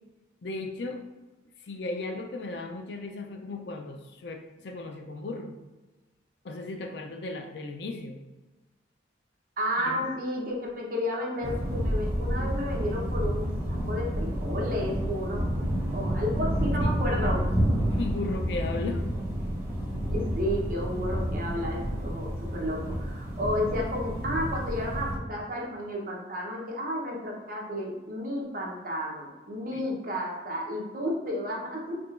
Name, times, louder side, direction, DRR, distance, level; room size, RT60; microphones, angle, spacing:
voice 1, 0.4-1.0 1.6-5.6 6.4-8.2 9.8-10.0 16.8-16.9 17.9-19.0 29.7-29.8, left 2 dB, 65° left, 4 dB, 0.4 m, -36 dB
voice 2, 9.6-15.4 15.9-17.5 20.1-32.0, left 1 dB, 50° right, -2 dB, 0.8 m, -32 dB
sound 1, 11.4-25.2, equal, 10° right, 0.7 m, -29 dB
4.8 x 2.8 x 2.4 m, 1.1 s
head